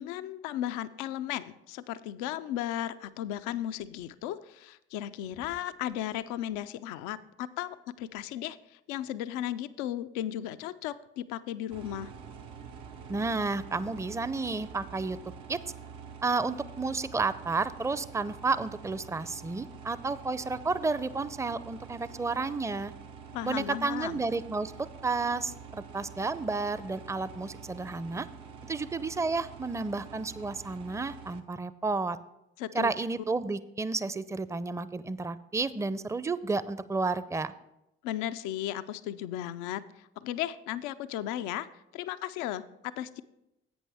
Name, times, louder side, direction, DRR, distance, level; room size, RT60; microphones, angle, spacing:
voice 1, 0.0-12.1 23.3-24.2 32.6-32.9 38.0-43.2, left 12 dB, 80° left, 13 dB, 0.5 m, -35 dB
sound 1, 11.7-31.4, right 6 dB, 75° right, 0.8 m, -47 dB
voice 2, 13.1-15.2 15.5-15.6 16.2-22.9 23.4-24.7 25.0-28.3 28.7-32.2 32.7-37.5, right 3 dB, 10° right, 15 dB, 0.5 m, -31 dB
11.5 x 8.3 x 3.4 m, 0.86 s
hypercardioid pair, 40°, 30 cm